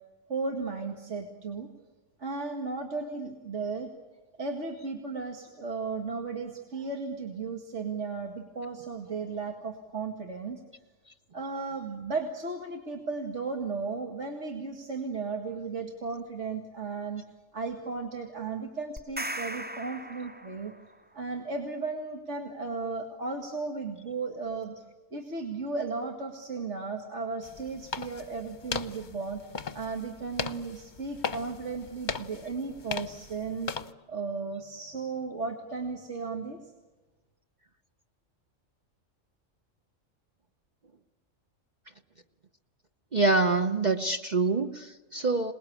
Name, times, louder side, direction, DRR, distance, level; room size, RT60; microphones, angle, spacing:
voice 1, 0.3-1.7 2.2-3.9 4.4-10.6 11.3-17.2 17.5-20.7 21.1-24.8 25.1-29.4 29.7-33.7 34.1-36.7, right 4 dB, 65° right, 2 dB, 2.4 m, -35 dB
sound 1, 19.0-20.9, right 1 dB, 10° right, 0.5 m, -38 dB
sound 2, 27.4-33.9, left 5 dB, 40° left, 1.0 m, -38 dB
voice 2, 43.1-45.5, right 3 dB, 40° right, 5 dB, 1.0 m, -25 dB
27.5 x 20.0 x 8.7 m, 1.2 s
omnidirectional pair, 1.3 m